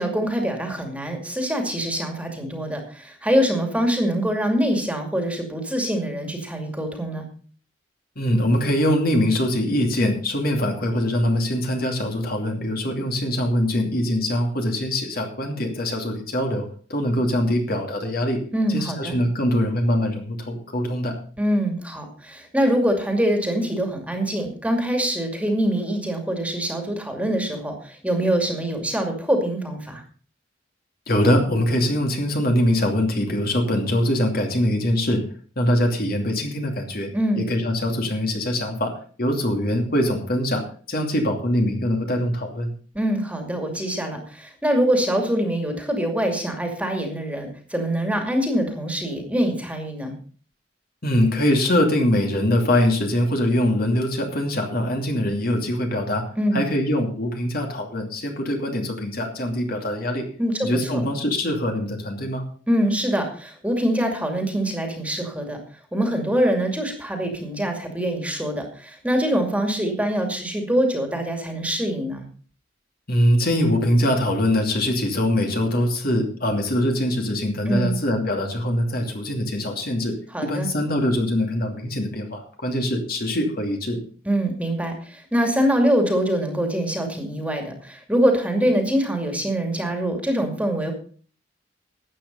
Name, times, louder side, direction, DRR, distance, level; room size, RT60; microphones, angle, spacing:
voice 1, 0.0-7.3 18.5-19.2 21.4-30.0 37.1-37.4 42.9-50.2 56.4-56.6 60.4-61.0 62.7-65.6 65.9-72.3 77.7-78.0 80.3-80.7 84.2-90.9, equal, 5° right, 3 dB, 2.4 m, -24 dB
voice 2, 8.2-18.4 18.7-21.2 31.1-35.2 35.6-37.1 37.4-42.7 51.0-56.3 56.5-60.3 60.6-62.4 73.1-80.1 80.4-84.0, left 1 dB, 50° left, 3 dB, 2.7 m, -23 dB
13.0 x 9.1 x 5.4 m, 0.43 s
head